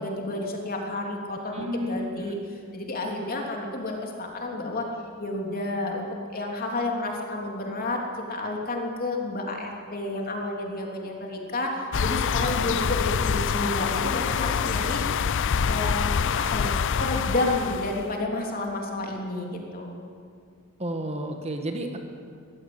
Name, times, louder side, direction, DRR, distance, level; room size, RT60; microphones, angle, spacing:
voice 1, 0.0-2.4 2.7-4.9 5.2-8.0 8.3-15.0 15.6-16.7 17.0-19.9, left 2 dB, 45° left, 0 dB, 3.3 m, -30 dB
voice 2, 1.4-2.4 20.8-22.0, equal, 30° right, 4 dB, 1.5 m, -32 dB
sound 1, 11.9-18.1, left 6 dB, 60° left, 0.5 m, -26 dB
22.0 x 15.0 x 8.0 m, 2.2 s
head